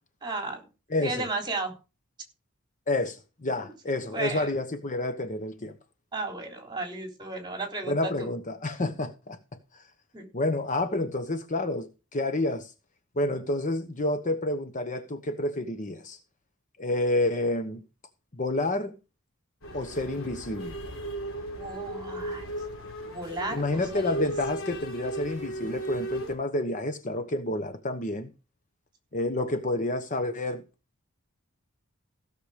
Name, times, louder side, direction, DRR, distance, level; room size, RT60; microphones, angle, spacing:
voice 1, 0.2-0.6 1.0-1.7 3.6-3.7 4.0-4.5 6.1-8.3 10.1-10.3 21.5-22.5 23.1-24.2, right 2 dB, 20° right, 3.8 m, -34 dB
voice 2, 0.9-1.3 2.9-5.7 7.9-9.4 10.3-12.7 13.2-16.2 16.8-17.8 18.3-18.9 19.7-20.8 23.5-28.3 29.1-30.6, left 2 dB, 35° left, 1.1 m, -29 dB
sound 1, 19.6-26.3, right 1 dB, 65° left, 4.1 m, -36 dB
16.5 x 6.8 x 5.0 m
head